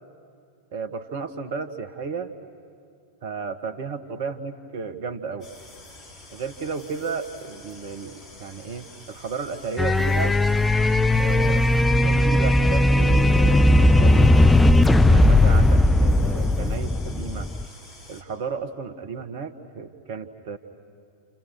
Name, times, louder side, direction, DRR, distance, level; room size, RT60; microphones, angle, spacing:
voice 1, 0.7-2.3 3.2-5.5 6.3-10.4 11.2-11.7 12.0-14.4 15.1-17.5 18.1-20.6, right 5 dB, 50° right, 9 dB, 1.7 m, -33 dB
sound 1, 5.4-18.2, left 2 dB, 30° left, 4.6 m, -47 dB
sound 2, 9.8-17.7, left 1 dB, 5° left, 0.6 m, -17 dB
30.0 x 29.5 x 6.3 m, 2.3 s
figure-of-eight pair, 90°, 0 cm